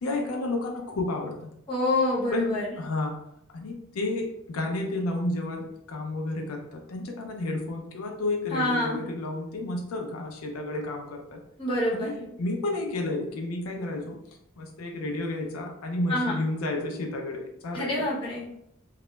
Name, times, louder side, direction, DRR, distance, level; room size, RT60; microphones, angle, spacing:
voice 1, 0.0-1.5 2.3-3.2 3.5-11.4 11.9-14.2 14.6-18.1, left 2 dB, 90° left, 2 dB, 0.4 m, -31 dB
voice 2, 1.7-2.7 8.5-9.0 11.6-12.1 16.1-16.4 17.7-18.5, left 1 dB, 25° left, -6 dB, 0.8 m, -26 dB
2.3 x 2.0 x 3.0 m, 0.76 s
head